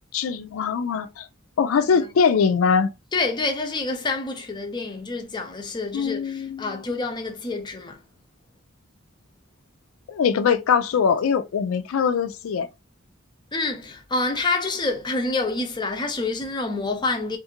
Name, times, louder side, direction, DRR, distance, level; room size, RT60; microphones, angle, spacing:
voice 1, 0.1-1.3 1.6-2.9 5.9-6.8 10.1-12.7, left 6 dB, 80° left, 0.4 m, -22 dB
voice 2, 3.1-8.0 13.5-17.4, left 3 dB, 20° left, 0.5 m, -27 dB
2.5 x 2.4 x 2.8 m
head